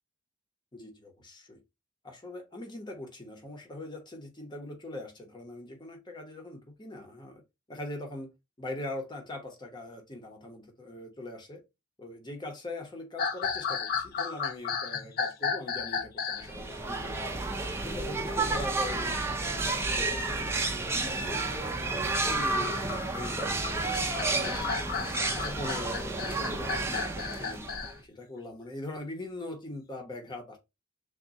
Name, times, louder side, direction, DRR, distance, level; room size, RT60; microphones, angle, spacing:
voice 1, 0.7-1.6 2.0-7.4 7.7-8.3 8.6-11.6 12.0-22.0 22.2-25.0 25.3-27.7 28.1-30.6, left 1 dB, 20° left, 0.9 m, -42 dB
sound 1, 13.2-16.5 17.9-18.5 18.9-19.0 19.7-20.1 21.7-27.9, left 6 dB, 45° left, 0.5 m, -34 dB
sound 2, 16.4-28.0, right 3 dB, 10° right, 0.5 m, -31 dB
3.6 x 2.3 x 4.0 m
head